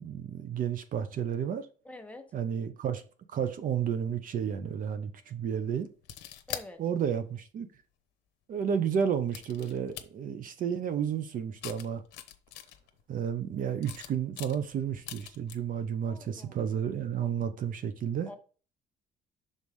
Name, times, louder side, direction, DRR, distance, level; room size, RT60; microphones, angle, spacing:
voice 1, 0.0-1.7 2.3-3.0 3.3-5.9 6.8-7.7 8.5-12.0 13.1-18.3, right 8 dB, 55° right, 0.8 m, -31 dB
voice 2, 1.8-2.2 6.5-6.8 16.0-16.5 18.2-18.4, left 2 dB, 10° left, 1.0 m, -46 dB
sound 1, 6.0-6.7 7.7-7.8 9.3-10.0 11.6-13.0 13.7-15.5, left 11 dB, 80° left, 0.8 m, -43 dB
5.5 x 4.0 x 4.8 m
cardioid pair, 110°, 17 cm